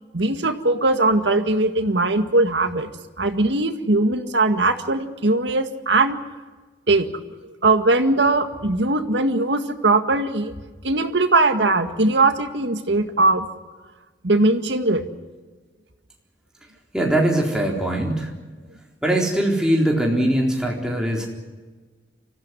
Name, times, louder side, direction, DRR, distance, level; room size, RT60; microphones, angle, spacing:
voice 1, 0.1-2.9 3.2-6.2 6.9-7.1 7.6-10.5 10.8-13.5 14.2-15.0, right 2 dB, 85° right, 7 dB, 1.9 m, -20 dB
voice 2, 16.9-18.3 19.0-21.3, right 1 dB, 5° right, -1 dB, 4.0 m, -21 dB
25.5 x 15.5 x 9.9 m, 1.3 s
head